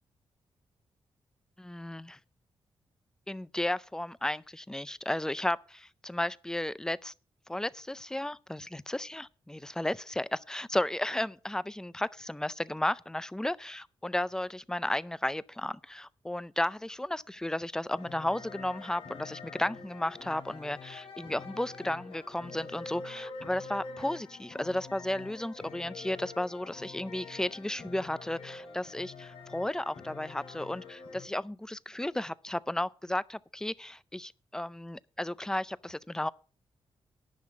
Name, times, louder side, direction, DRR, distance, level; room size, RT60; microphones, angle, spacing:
voice 1, 1.6-2.2 3.3-7.1 7.5-36.3, left 1 dB, 5° left, 0.4 m, -34 dB
sound 1, 17.9-31.3, left 4 dB, 75° left, 2.5 m, -46 dB
10.5 x 5.7 x 7.5 m
cardioid pair, 85°, 10 cm